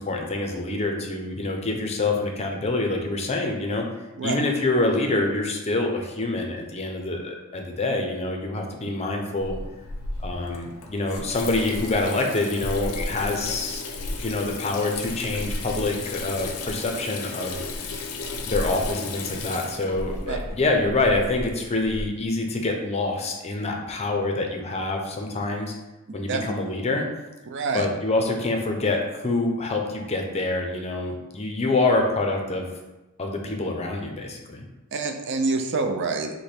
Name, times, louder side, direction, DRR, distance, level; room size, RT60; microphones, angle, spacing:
voice 1, 0.0-3.9 4.2-9.6 10.2-13.8 14.2-17.6 18.4-25.7 26.1-27.1 27.7-32.7 33.2-34.7, left 2 dB, 30° left, 2 dB, 0.5 m, -26 dB
Water tap faucet / Sink (filling or washing), 9.4-22.0, left 2 dB, 75° left, 0.6 m, -34 dB
voice 2, 26.1-26.4 27.5-27.9 34.9-36.3, right 4 dB, 55° right, 5 dB, 0.5 m, -26 dB
5.0 x 2.2 x 4.3 m, 1.1 s
head